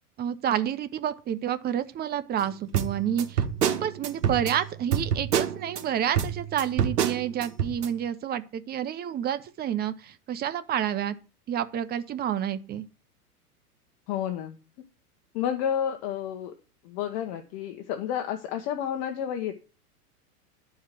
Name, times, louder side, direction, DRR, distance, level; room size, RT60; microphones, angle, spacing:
voice 1, 0.2-11.1 11.5-12.8, right 10 dB, 20° right, 0.7 m, -29 dB
sound 1, 2.7-5.8 6.2-7.9, right 8 dB, 85° right, 1.5 m, -27 dB
voice 2, 14.1-14.6 15.3-16.5 16.8-19.5, left 9 dB, 45° left, 1.3 m, -30 dB
11.5 x 4.8 x 7.6 m
hypercardioid pair, 125°, 47 cm